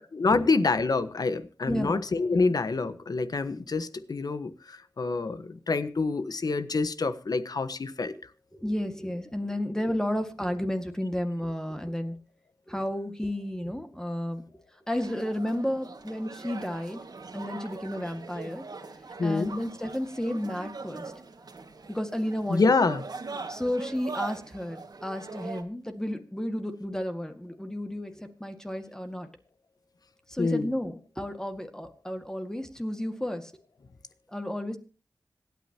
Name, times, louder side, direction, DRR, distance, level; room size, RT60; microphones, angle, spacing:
voice 1, 0.1-8.1 19.2-19.5 22.5-23.0 30.4-30.7, left 3 dB, 60° left, 1.3 m, -26 dB
voice 2, 1.7-2.5 8.5-12.2 12.7-14.4 14.9-17.1 17.3-18.7 19.2-21.1 21.9-22.7 23.5-29.3 30.3-33.5 34.3-34.8, left 1 dB, 10° left, 1.9 m, -32 dB
sound 1, 14.9-25.6, right 3 dB, 65° right, 1.9 m, -41 dB
26.0 x 9.4 x 2.9 m
wide cardioid pair, 70°, 7 cm